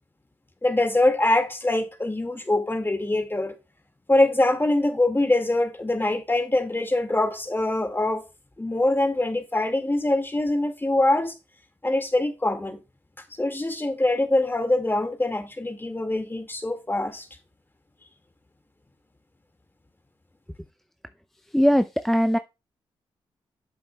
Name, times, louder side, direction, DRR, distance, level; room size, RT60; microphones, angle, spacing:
voice 1, 0.6-3.6 4.1-8.2 8.6-11.4 11.8-12.8 13.4-17.3, left 2 dB, 20° left, 2.0 m, -23 dB
voice 2, 21.5-22.4, equal, 5° left, 0.5 m, -20 dB
9.8 x 7.7 x 2.3 m
supercardioid pair, 50°, 11 cm